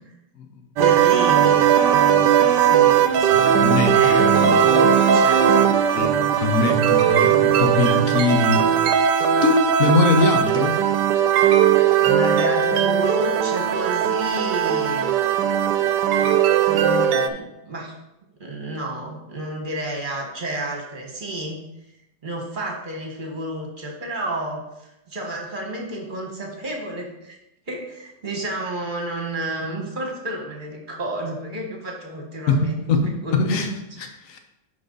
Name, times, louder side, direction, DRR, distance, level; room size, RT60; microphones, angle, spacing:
voice 1, 0.8-3.1 3.9-5.8 12.0-15.1 16.6-17.9 18.4-21.6 22.2-27.4 27.7-33.6, right 1 dB, 30° right, 0 dB, 1.5 m, -31 dB
sound 1, 0.8-17.3, right 9 dB, 85° right, 1.2 m, -18 dB
voice 2, 3.2-4.5 5.9-8.6 9.4-10.8 32.5-33.7 34.0-34.4, left 3 dB, 55° left, 4 dB, 1.2 m, -22 dB
10.5 x 4.0 x 3.9 m, 0.88 s
omnidirectional pair, 1.8 m